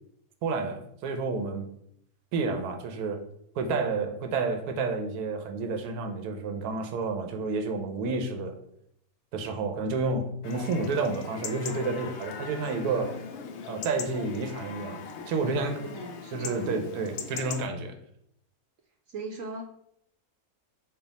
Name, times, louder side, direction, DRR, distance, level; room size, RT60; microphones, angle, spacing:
voice 1, 0.4-1.7 2.3-3.2 3.5-8.6 9.3-13.2 13.7-15.8 16.3-17.9, right 3 dB, 85° right, 5 dB, 1.2 m, -30 dB
Chatter / Livestock farm animals working animals / Chirp tweet, 10.4-17.6, left 5 dB, 65° left, 0.7 m, -40 dB
voice 2, 15.9-16.8 19.1-19.7, right 3 dB, 70° right, 3 dB, 0.9 m, -38 dB
5.5 x 2.3 x 4.0 m, 0.71 s
omnidirectional pair, 1.6 m